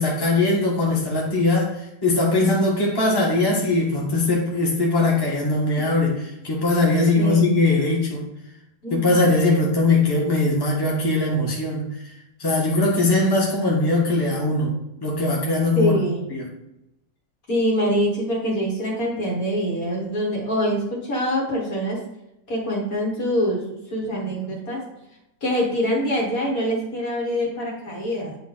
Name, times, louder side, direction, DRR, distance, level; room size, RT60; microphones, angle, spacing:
voice 1, 0.0-8.2 8.9-12.1 12.4-14.7 15.0-15.9 16.3-16.5, left 2 dB, 15° left, -4 dB, 1.4 m, -21 dB
voice 2, 7.1-7.6 8.8-9.2 15.8-16.2 17.5-22.0 22.5-23.6 23.9-24.8 25.4-28.4, equal, 55° left, -3 dB, 2.1 m, -24 dB
9.1 x 3.5 x 3.9 m, 0.86 s
omnidirectional pair, 1.8 m